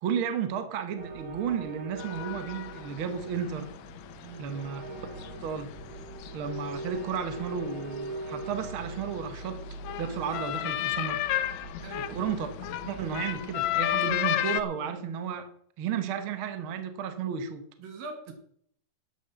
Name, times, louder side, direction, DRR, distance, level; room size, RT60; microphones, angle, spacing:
voice 1, 0.0-3.7 4.4-4.8 5.4-5.7 6.3-9.6 10.0-11.2 11.9-12.5 12.9-15.5 15.8-17.6, right 7 dB, 60° right, 8 dB, 1.4 m, -33 dB
sound 1, 1.0-14.3, right 3 dB, 35° right, 2.1 m, -43 dB
sound 2, 2.0-14.6, left 13 dB, 70° left, 1.7 m, -34 dB
voice 2, 11.8-12.2 17.8-18.3, right 3 dB, 90° right, 4 dB, 4.0 m, -43 dB
12.0 x 8.6 x 6.9 m, 0.68 s
omnidirectional pair, 4.0 m